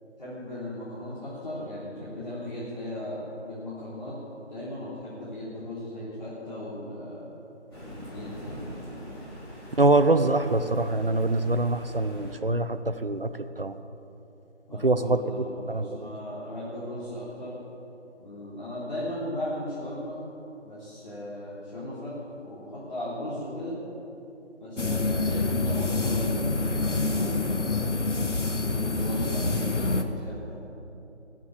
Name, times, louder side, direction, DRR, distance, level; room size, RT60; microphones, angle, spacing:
voice 1, 0.2-4.1 4.5-7.3 8.1-8.6 14.7-17.6 18.2-20.2 20.6-22.2 22.4-23.8 24.6-27.9 28.7-30.6, left 1 dB, 40° left, -11 dB, 3.7 m, -37 dB
Thunder, 7.7-12.3, equal, 20° left, 3.1 m, -42 dB
voice 2, 9.8-13.3 13.6-13.8 14.8-15.2 15.7-15.9, right 2 dB, 50° right, 10 dB, 0.7 m, -24 dB
sound 1, 24.8-30.0, left 3 dB, 75° left, 1.3 m, -26 dB
18.5 x 7.5 x 8.8 m, 2.9 s
figure-of-eight pair, 170°, 36 cm